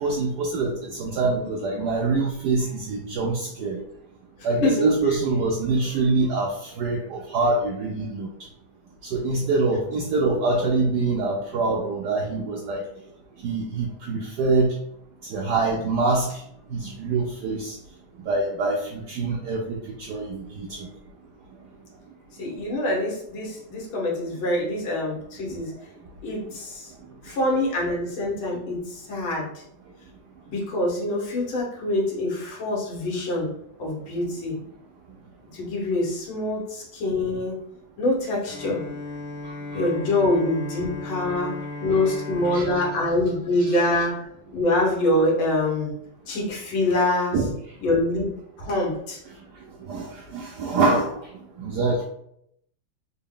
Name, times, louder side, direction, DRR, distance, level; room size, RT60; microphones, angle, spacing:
voice 1, 0.0-3.8 4.4-8.3 9.1-12.8 13.4-14.7 15.3-16.4 16.7-17.8 18.3-19.8 20.1-20.9 39.7-39.9 41.9-42.2 42.4-42.6 43.6-43.7 47.3-47.5 49.9-51.2 51.6-52.0, right 3 dB, 75° right, -1 dB, 1.0 m, -25 dB
voice 2, 4.4-4.9 22.4-25.7 26.2-26.9 27.2-29.6 30.5-33.5 33.8-34.6 35.5-37.6 38.0-38.8 39.7-44.3 44.5-45.9 46.3-47.4 47.8-49.2, left 1 dB, 85° left, -3 dB, 1.9 m, -25 dB
Bowed string instrument, 38.4-44.3, left 2 dB, 50° left, 0.7 m, -36 dB
4.1 x 2.1 x 3.7 m, 0.73 s
omnidirectional pair, 2.2 m